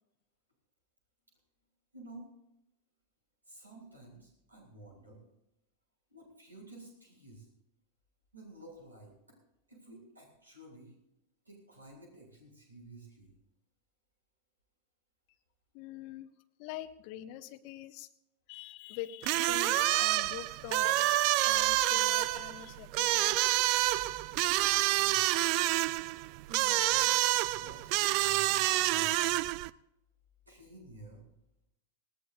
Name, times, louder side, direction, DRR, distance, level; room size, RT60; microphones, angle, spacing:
voice 1, 1.9-2.3 3.4-5.2 6.1-7.5 8.3-9.4 9.7-10.9 11.4-13.3 24.3-25.3 26.5-29.6 30.5-31.2, right 2 dB, 80° right, -1 dB, 7.9 m, -52 dB
voice 2, 15.7-16.3 16.6-18.1 18.5-23.4, left 13 dB, 45° left, 9 dB, 0.9 m, -44 dB
sound 1, 19.2-29.7, right 17 dB, 45° right, 0.5 m, -28 dB
20.0 x 19.0 x 2.7 m, 0.85 s
figure-of-eight pair, 90°, 0 cm